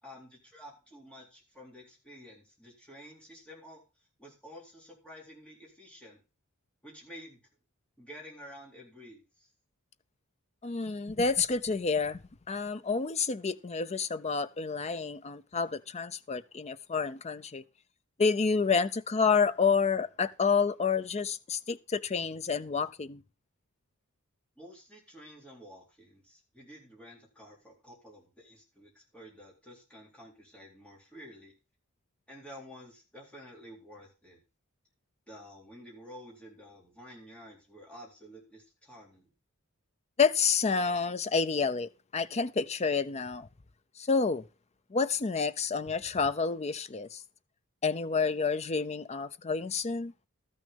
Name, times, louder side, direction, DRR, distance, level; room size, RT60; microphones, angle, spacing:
voice 1, 0.0-3.8 4.2-6.2 6.8-7.4 8.0-9.5 24.6-31.5 32.3-34.4 35.3-39.3, equal, 5° left, 3.8 m, -51 dB
voice 2, 10.6-12.2 12.5-17.6 18.2-23.2 40.2-43.5 44.0-44.4 44.9-47.2 47.8-50.1, left 5 dB, 30° left, 0.5 m, -29 dB
13.0 x 6.3 x 5.2 m
head